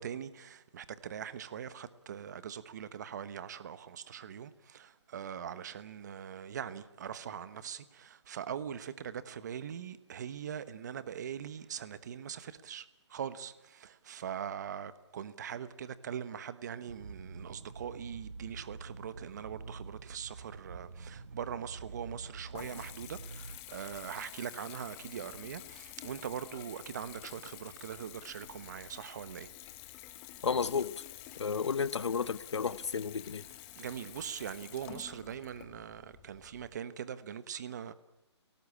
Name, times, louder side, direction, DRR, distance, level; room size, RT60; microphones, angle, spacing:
voice 1, 0.0-29.5 33.8-37.9, right 8 dB, 40° right, 1.2 m, -42 dB
sound 1, 16.9-23.6, right 4 dB, 75° right, 1.8 m, -47 dB
Water tap faucet / Bathtub (filling or washing) / Trickle dribble, 21.9-36.8, left 14 dB, 15° left, 0.9 m, -50 dB
voice 2, 30.4-30.9 31.4-33.4, left 6 dB, 75° left, 1.1 m, -32 dB
29.0 x 18.0 x 8.6 m
hypercardioid pair, 165°, 15 cm